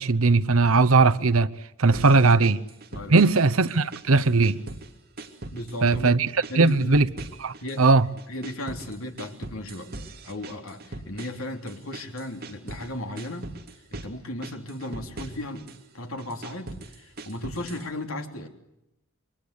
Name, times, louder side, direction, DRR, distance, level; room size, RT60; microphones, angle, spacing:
voice 1, 0.0-1.5 1.8-2.6 3.1-4.6 5.8-6.3 6.5-7.1 7.4-8.1, right 3 dB, 90° right, 0.9 m, -19 dB
voice 2, 1.9-2.3 2.9-3.3 5.5-6.2 6.5-7.0 7.6-7.9 8.3-9.9 10.2-15.7 15.9-18.5, left 1 dB, 90° left, 3.2 m, -36 dB
sound 1, 1.9-3.4 3.7-4.9 5.2-6.1 6.4-7.9 8.2-12.9 13.2-14.1 14.4-15.8 16.2-17.9, right 2 dB, 45° right, 2.7 m, -40 dB
27.5 x 23.5 x 8.2 m
head